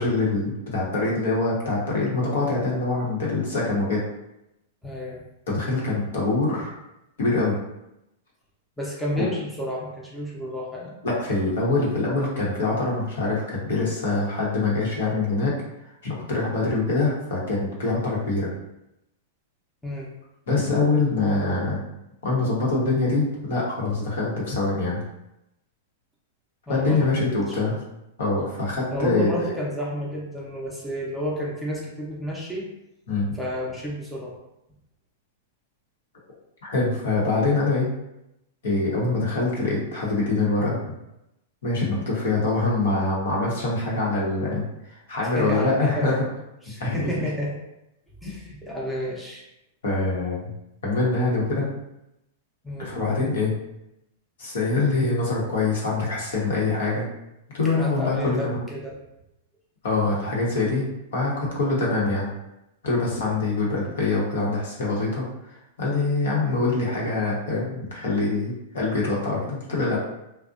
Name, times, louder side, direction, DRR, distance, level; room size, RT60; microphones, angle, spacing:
voice 1, 0.0-4.0 5.5-6.7 7.2-7.6 9.2-9.3 11.0-15.6 16.0-18.5 20.5-21.8 22.2-25.0 26.7-27.7 28.2-29.5 33.1-33.3 36.7-37.9 38.6-40.8 41.6-44.6 44.9-46.2 46.8-47.1 48.3-48.4 49.8-50.4 50.8-51.7 52.8-53.5 54.4-57.1 57.5-58.6 59.8-62.3 62.8-65.2 65.8-70.0, left 3 dB, 75° left, -4 dB, 0.9 m, -24 dB
voice 2, 4.8-5.2 8.8-11.0 19.8-20.1 26.7-27.1 27.5-27.8 28.9-32.7 33.3-34.3 39.5-39.6 42.1-42.2 45.4-46.2 46.6-47.5 48.2-49.4 52.6-52.9 57.6-59.0 61.5-61.6, equal, ahead, -5 dB, 0.6 m, -31 dB
2.5 x 2.1 x 2.5 m, 0.87 s
hypercardioid pair, 125°, 0 cm